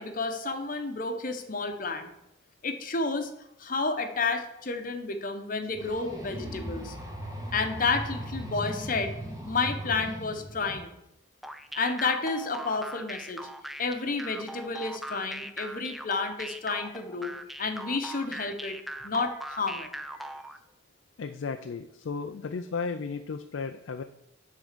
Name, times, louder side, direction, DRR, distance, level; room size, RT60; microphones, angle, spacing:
voice 1, 0.0-2.1 2.6-3.3 3.6-7.0 7.5-9.1 9.4-10.9 11.7-13.5 13.8-17.3 17.6-18.8 19.0-19.9, left 4 dB, 45° left, 6 dB, 0.9 m, -30 dB
sound 1, 5.7-10.8, equal, 20° right, 1.7 m, -38 dB
sound 2, 11.4-20.6, right 1 dB, ahead, 0.3 m, -40 dB
voice 2, 20.1-20.5 21.2-24.0, left 5 dB, 80° left, 7 dB, 0.4 m, -35 dB
9.4 x 3.8 x 6.7 m, 0.85 s
head